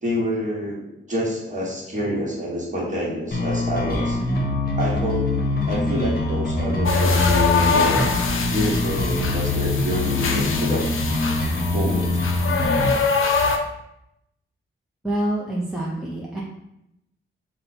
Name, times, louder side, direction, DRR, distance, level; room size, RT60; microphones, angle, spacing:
voice 1, 0.0-4.2 4.8-5.3 5.7-8.1 8.5-10.9 11.7-12.2, equal, 35° right, -4 dB, 1.3 m, -27 dB
sound 1, 3.3-12.9, left 2 dB, 45° left, 0.9 m, -24 dB
sound 2, 6.8-13.6, left 5 dB, 75° left, 0.6 m, -24 dB
voice 2, 15.0-16.4, right 1 dB, 5° right, -5 dB, 0.6 m, -26 dB
5.6 x 2.2 x 4.1 m, 0.82 s
wide cardioid pair, 165°, 21 cm